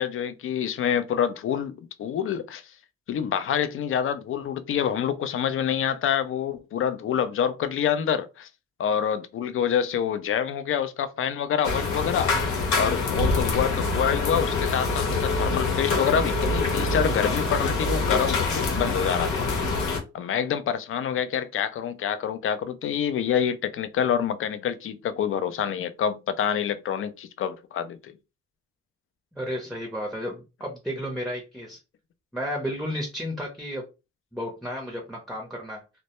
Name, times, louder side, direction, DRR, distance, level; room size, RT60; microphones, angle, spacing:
voice 1, 0.0-2.6 3.1-8.5 8.8-12.3 12.8-19.5 20.1-28.1, left 8 dB, 45° left, 0.4 m, -27 dB
sound 1, 11.6-20.0, left 3 dB, 75° left, 0.8 m, -25 dB
voice 2, 29.3-31.8 32.3-33.9 34.3-35.8, equal, ahead, 0.6 m, -32 dB
2.1 x 2.0 x 2.9 m
cardioid pair, 80°, 30 cm